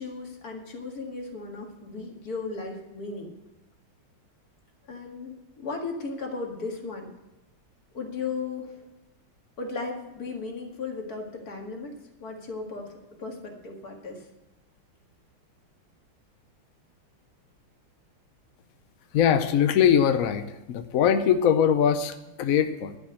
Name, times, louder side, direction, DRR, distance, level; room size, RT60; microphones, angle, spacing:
voice 1, 0.0-3.3 4.9-7.1 7.9-8.8 9.6-11.9 12.2-14.3, left 4 dB, 45° left, 1 dB, 2.3 m, -36 dB
voice 2, 19.1-23.0, left 8 dB, 70° left, 9 dB, 0.8 m, -22 dB
11.5 x 5.9 x 8.4 m, 1.0 s
omnidirectional pair, 2.3 m